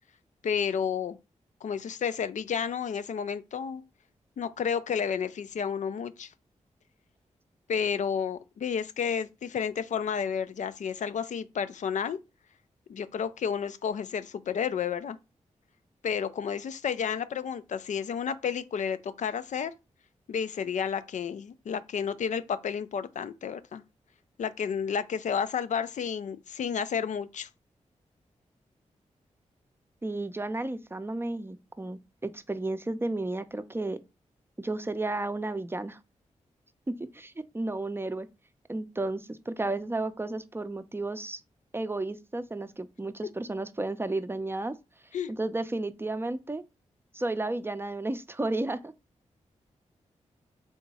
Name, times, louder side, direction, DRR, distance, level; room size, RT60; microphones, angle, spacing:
voice 1, 0.4-1.2 1.6-3.8 4.4-6.3 7.7-12.2 12.9-15.2 16.0-19.7 20.3-23.8 24.4-27.5 45.1-45.3, left 7 dB, 75° left, 0.4 m, -31 dB
voice 2, 30.0-34.0 34.6-36.0 36.9-38.3 38.7-41.4 41.7-44.7 45.4-46.6 47.1-48.9, right 2 dB, 20° right, 0.5 m, -33 dB
3.5 x 2.9 x 4.1 m
cardioid pair, 50°, 13 cm